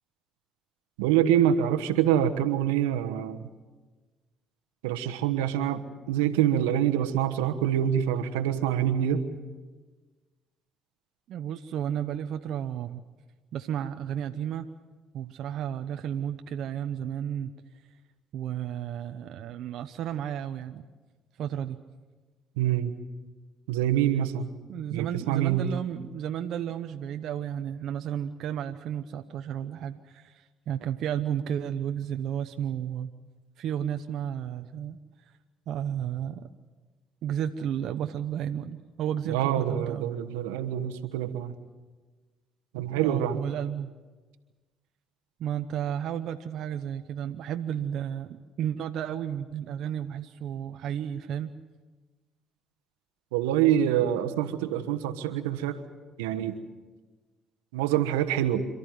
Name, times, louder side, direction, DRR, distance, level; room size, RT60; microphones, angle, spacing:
voice 1, 1.0-3.5 4.8-9.3 22.6-23.0 23.7-24.5 24.9-25.7 39.2-41.5 42.7-43.4 53.3-55.8 56.2-56.6 57.7-58.7, right 10 dB, 90° right, 8 dB, 1.2 m, -26 dB
voice 2, 11.3-13.0 13.5-14.7 15.1-17.6 18.3-20.8 21.4-21.8 24.7-33.1 33.6-35.0 35.7-36.5 37.2-40.1 42.9-43.9 45.4-51.5, right 9 dB, 70° right, 7 dB, 0.8 m, -32 dB
27.5 x 13.5 x 9.3 m, 1.3 s
hypercardioid pair, 60°, 0 cm